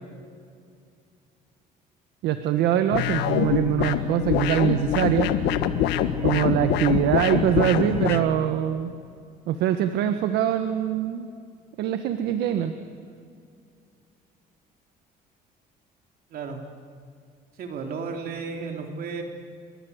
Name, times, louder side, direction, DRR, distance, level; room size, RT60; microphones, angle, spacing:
voice 1, 2.2-5.3 6.2-8.9 9.5-11.3 11.8-12.7, right 10 dB, 85° right, 8 dB, 1.6 m, -23 dB
sound 1, 2.9-8.2, left 10 dB, 85° left, 1.6 m, -24 dB
voice 2, 16.3-16.6 17.5-19.2, right 5 dB, 60° right, 4 dB, 3.2 m, -33 dB
29.0 x 24.5 x 8.2 m, 2.3 s
cardioid pair, 110°, 17 cm